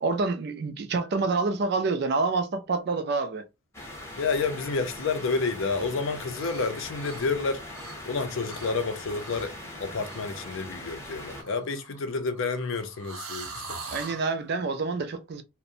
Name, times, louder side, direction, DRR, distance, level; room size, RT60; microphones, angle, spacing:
voice 1, 0.0-3.4 13.9-15.4, right 3 dB, 50° right, 0.3 m, -27 dB
sound 1, 3.7-11.4, left 1 dB, 10° left, 0.6 m, -41 dB
voice 2, 4.2-7.6 8.1-9.5 9.8-14.1, left 4 dB, 60° left, 0.5 m, -30 dB
sound 2, 6.3-6.7 7.0-8.1 8.4-8.7 9.1-9.6 10.0-10.3 11.2-14.3, right 4 dB, 85° right, 0.7 m, -42 dB
2.5 x 2.0 x 2.6 m
head